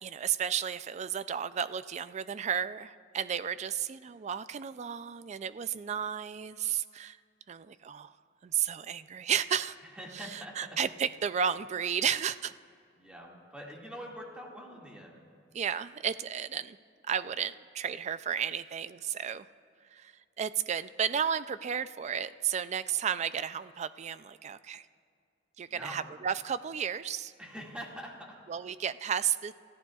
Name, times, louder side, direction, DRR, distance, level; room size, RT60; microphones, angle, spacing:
voice 1, 0.0-7.2 7.5-8.1 8.4-9.8 10.1-12.5 15.5-16.8 17.1-19.5 19.9-24.9 25.6-27.3 28.5-29.5, right 8 dB, 35° right, 15 dB, 0.3 m, -33 dB
voice 2, 10.0-10.7 13.0-15.3 25.7-26.1 27.4-28.4, equal, 5° right, -2 dB, 2.0 m, -44 dB
29.0 x 14.5 x 2.4 m, 2.3 s
head